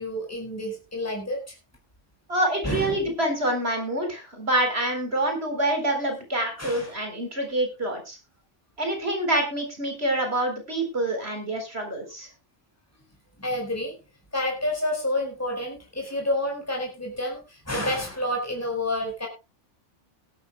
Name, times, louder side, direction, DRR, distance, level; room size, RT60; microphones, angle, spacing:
voice 1, 0.0-1.6 2.6-3.1 6.6-6.9 13.4-13.9 14.3-19.3, left 1 dB, 10° left, 1 dB, 4.6 m, -29 dB
voice 2, 2.3-8.2 8.8-12.3, right 1 dB, 55° right, 4 dB, 4.2 m, -26 dB
19.0 x 12.5 x 2.2 m, 0.26 s
omnidirectional pair, 1.3 m